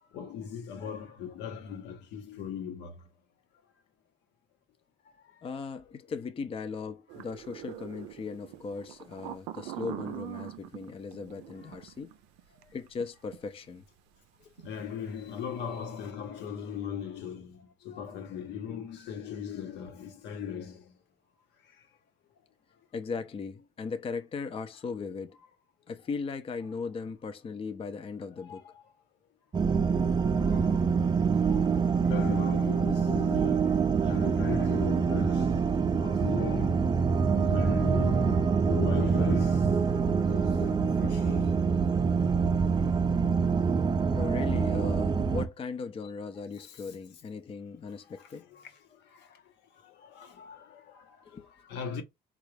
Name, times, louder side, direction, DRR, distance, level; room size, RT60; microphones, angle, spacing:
voice 1, 0.1-2.9 11.6-11.7 14.6-20.8 28.4-28.7 30.5-30.6 31.5-35.6 36.0-36.9 37.2-41.5 42.7-42.9 46.6-46.8 48.1-48.7 49.1-49.3 49.8-51.2 51.6-52.0, left 7 dB, 75° left, 1.0 m, -39 dB
voice 2, 5.4-12.1 12.7-13.8 22.9-25.4 25.9-28.7 44.1-48.5 51.3-51.5, left 5 dB, 30° left, 0.5 m, -38 dB
sound 1, 7.1-13.0 13.3-13.4 14.6-14.8 15.1-15.4, right 13 dB, 90° right, 0.5 m, -43 dB
sound 2, 29.5-45.5, right 5 dB, 25° right, 0.4 m, -25 dB
3.8 x 2.4 x 3.2 m
supercardioid pair, 80°, 18 cm